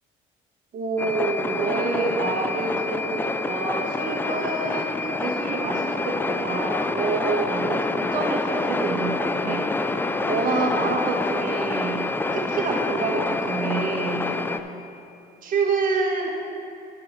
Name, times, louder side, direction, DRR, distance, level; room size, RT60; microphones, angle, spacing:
voice 1, 0.7-9.6 10.3-12.0 12.3-14.2 15.4-16.3, right 3 dB, 55° right, -1 dB, 1.7 m, -27 dB
sound 1, 1.0-14.6, left 3 dB, 10° left, 0.4 m, -27 dB
10.5 x 5.4 x 5.2 m, 2.7 s
cardioid pair, 110°, 17 cm